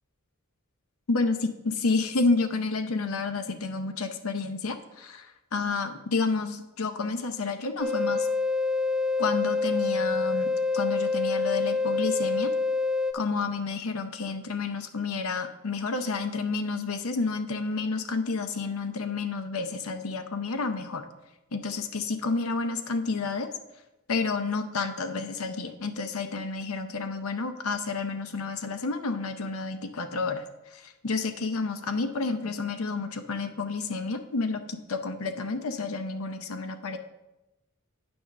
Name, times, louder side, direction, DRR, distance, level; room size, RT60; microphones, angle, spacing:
voice 1, 1.1-8.3 9.2-12.5 13.1-21.1 21.5-23.5 24.1-30.4 30.7-37.0, left 4 dB, 75° left, 8 dB, 0.7 m, -30 dB
sound 1, 7.8-13.1, left 3 dB, 5° right, 0.4 m, -26 dB
9.4 x 3.5 x 6.3 m, 0.98 s
head